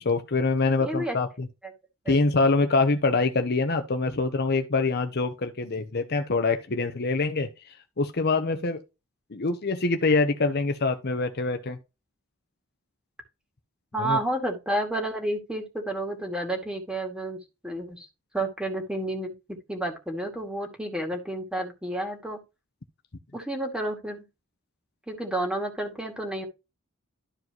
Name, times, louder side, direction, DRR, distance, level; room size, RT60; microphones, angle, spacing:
voice 1, 0.0-1.5 2.1-8.8 9.3-11.8 14.0-14.2, left 3 dB, 50° left, 0.9 m, -25 dB
voice 2, 0.8-1.2 2.0-2.2 13.9-18.1 18.3-22.4 23.3-24.2 25.1-26.5, right 1 dB, 5° right, 2.3 m, -31 dB
12.5 x 4.8 x 3.0 m
head